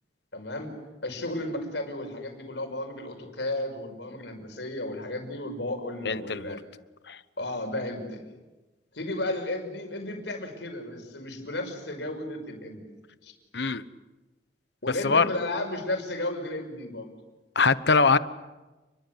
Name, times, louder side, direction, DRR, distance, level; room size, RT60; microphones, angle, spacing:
voice 1, 0.3-0.7 1.0-6.6 7.4-8.3 8.9-12.8 13.2-13.3 14.8-17.1, left 1 dB, 85° left, 5.7 m, -33 dB
voice 2, 6.0-6.6 7.1-7.2 13.5-13.8 15.0-15.3 17.5-18.2, left 4 dB, 65° left, 1.1 m, -22 dB
29.5 x 22.5 x 8.1 m
head